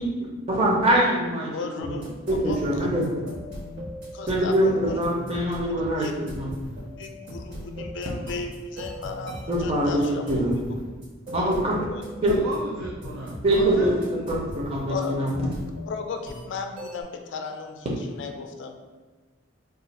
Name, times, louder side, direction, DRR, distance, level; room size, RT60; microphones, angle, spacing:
voice 1, 0.5-1.5 1.8-2.0 2.3-3.1 4.3-6.5 9.5-10.5 11.3-11.8 12.2-12.4 13.4-14.0 14.3-15.3, right 1 dB, 30° right, -3 dB, 0.6 m, -23 dB
voice 2, 1.5-2.1 2.4-2.7 4.1-5.0 5.9-6.1 7.0-10.6 11.9-12.0 14.9-15.1 15.9-18.8, left 4 dB, 60° left, 4 dB, 0.3 m, -35 dB
sound 1, 1.8-17.0, equal, 55° right, 1.0 m, -39 dB
voice 3, 12.3-14.4, right 2 dB, 80° right, -1 dB, 0.4 m, -36 dB
2.4 x 2.4 x 4.1 m, 1.3 s
head